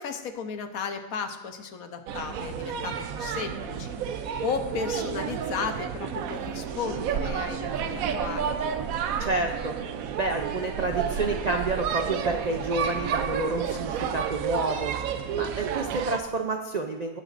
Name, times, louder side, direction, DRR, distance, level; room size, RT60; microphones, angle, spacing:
voice 1, 0.0-8.6, left 5 dB, 75° left, 7 dB, 1.3 m, -34 dB
sound 1, 2.1-16.2, right 7 dB, 75° right, 1.1 m, -31 dB
voice 2, 9.2-9.7 10.2-14.9 15.3-17.2, right 2 dB, 55° right, 4 dB, 0.4 m, -29 dB
17.5 x 8.1 x 2.5 m, 1.1 s
omnidirectional pair, 1.5 m